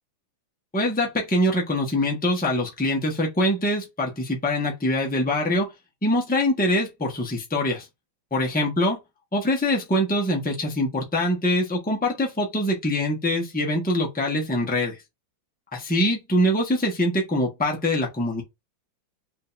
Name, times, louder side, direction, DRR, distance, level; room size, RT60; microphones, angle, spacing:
voice 1, 0.7-5.7 6.0-7.9 8.3-9.0 9.3-15.0 15.7-18.4, left 1 dB, 10° left, 0.6 m, -24 dB
5.0 x 2.7 x 2.5 m
omnidirectional pair, 2.2 m